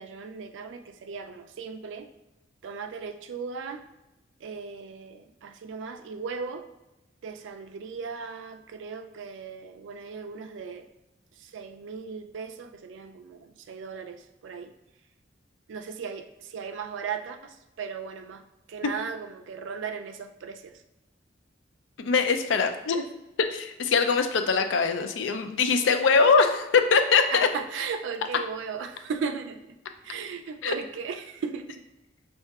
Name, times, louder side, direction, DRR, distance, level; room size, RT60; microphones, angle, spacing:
voice 1, 0.0-2.1 2.6-3.8 4.4-6.7 7.2-10.9 11.3-14.7 15.7-20.8 27.3-29.8 30.0-31.8, right 5 dB, 85° right, 6 dB, 0.4 m, -37 dB
voice 2, 22.0-23.0 23.4-27.5 30.6-30.7, left 5 dB, 90° left, 7 dB, 0.4 m, -22 dB
5.4 x 2.7 x 2.3 m, 0.99 s
head